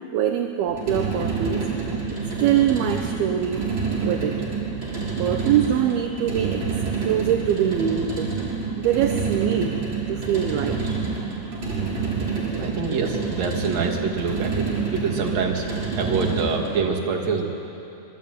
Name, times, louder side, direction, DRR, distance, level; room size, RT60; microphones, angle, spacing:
voice 1, 0.1-1.8 2.4-3.7 4.0-4.6 5.2-8.3 8.8-9.8 10.1-11.9 12.5-12.7, right 9 dB, 75° right, 4 dB, 2.4 m, -24 dB
sound 1, 0.7-16.8, right 4 dB, 25° right, 6.0 m, -28 dB
voice 2, 12.5-14.7 14.9-15.6 15.9-17.4, right 5 dB, 40° right, 1 dB, 3.1 m, -25 dB
26.5 x 23.0 x 9.5 m, 2.9 s
omnidirectional pair, 5.6 m